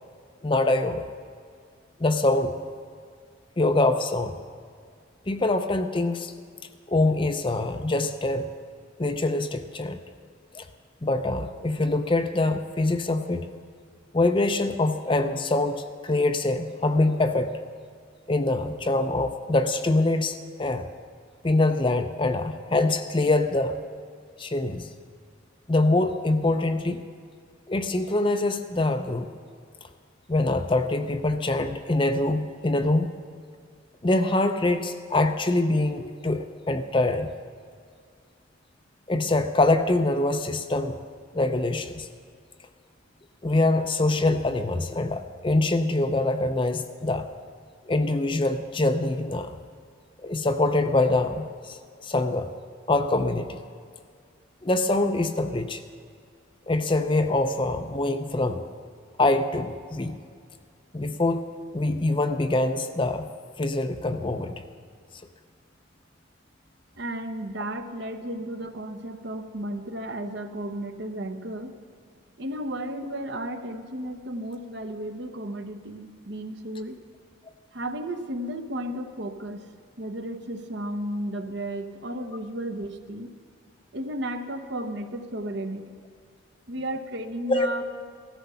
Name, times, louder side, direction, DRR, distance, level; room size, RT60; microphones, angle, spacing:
voice 1, 0.4-1.1 2.0-2.8 3.6-4.3 5.3-6.3 6.9-8.5 9.0-10.0 10.5-10.7 11.0-13.5 14.1-17.5 18.3-20.9 21.4-23.8 24.4-24.9 25.7-27.0 27.7-29.3 30.3-33.1 34.0-37.3 39.1-41.0 41.3-42.1 43.4-47.3 47.9-49.6 50.2-52.5 52.9-53.6 54.6-55.8 56.7-58.7 59.2-60.2 60.9-61.4 61.7-63.3 63.6-64.6 87.5-87.7, left 2 dB, 25° left, 8 dB, 0.5 m, -24 dB
voice 2, 67.0-71.7 72.4-77.0 77.7-79.7 80.0-83.3 83.9-85.8 86.7-87.8, right 1 dB, 55° right, 7 dB, 0.9 m, -33 dB
16.0 x 13.5 x 5.6 m, 2.1 s
head